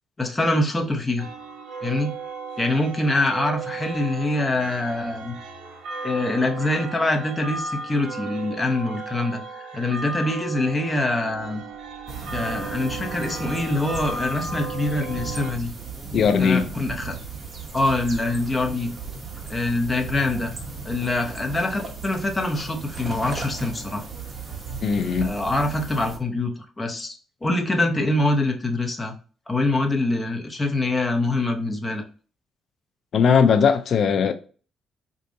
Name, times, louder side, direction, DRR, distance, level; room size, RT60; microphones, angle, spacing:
voice 1, 0.2-1.3 1.8-2.1 2.6-5.4 6.0-11.6 12.3-15.7 16.4-17.2 17.7-18.9 19.5-20.5 20.8-24.0 25.2-27.2 27.4-29.1 29.5-32.0, left 2 dB, 20° left, 0.9 m, -24 dB
sound 1, 1.2-15.5, right 4 dB, 70° right, 0.6 m, -35 dB
sound 2, 12.1-26.2, right 4 dB, 35° right, 1.0 m, -36 dB
voice 2, 16.1-16.6 24.8-25.3 33.1-34.3, left 6 dB, 60° left, 0.4 m, -19 dB
4.5 x 2.5 x 2.6 m
cardioid pair, 90°, 0 cm